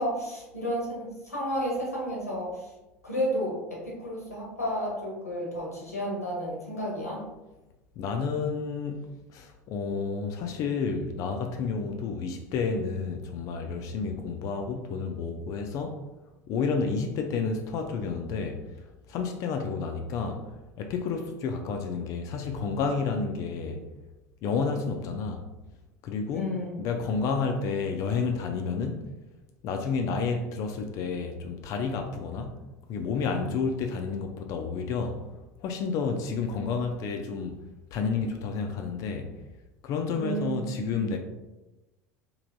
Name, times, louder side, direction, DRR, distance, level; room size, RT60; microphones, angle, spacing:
voice 1, 0.0-2.7 3.0-7.2 26.3-26.7 40.1-41.1, equal, 90° left, 0.8 m, -32 dB
voice 2, 8.0-16.0 16.5-18.6 19.1-20.4 20.8-23.8 24.4-25.4 26.0-26.5 26.8-29.1 29.6-32.6 32.9-35.2 35.6-37.6 37.9-39.3 39.8-41.2, left 5 dB, 45° left, 0.4 m, -30 dB
3.2 x 2.6 x 2.6 m
figure-of-eight pair, 70°, 8 cm